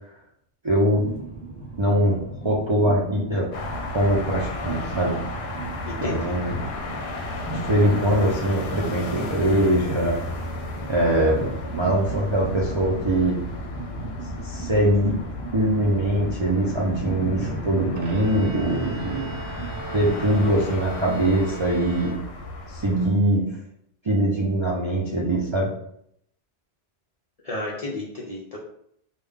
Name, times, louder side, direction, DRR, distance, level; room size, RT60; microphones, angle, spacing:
voice 1, 0.6-1.0 1.8-3.5 3.9-5.2 6.0-6.6 7.5-10.2 10.9-11.5 11.7-13.4 14.4-15.2 15.5-19.4 19.9-22.1 22.7-23.5 24.0-25.7, right 1 dB, 40° right, -5 dB, 0.4 m, -22 dB
Train, 0.9-20.6, right 3 dB, 15° left, 1.0 m, -37 dB
sound 1, 3.5-23.1, left 2 dB, 70° left, 0.8 m, -34 dB
voice 2, 5.9-6.4 27.4-28.6, left 2 dB, 45° left, -4 dB, 0.5 m, -32 dB
Bowed string instrument, 18.0-22.7, right 3 dB, 75° right, 0.9 m, -40 dB
3.6 x 2.3 x 3.4 m, 0.71 s
omnidirectional pair, 1.1 m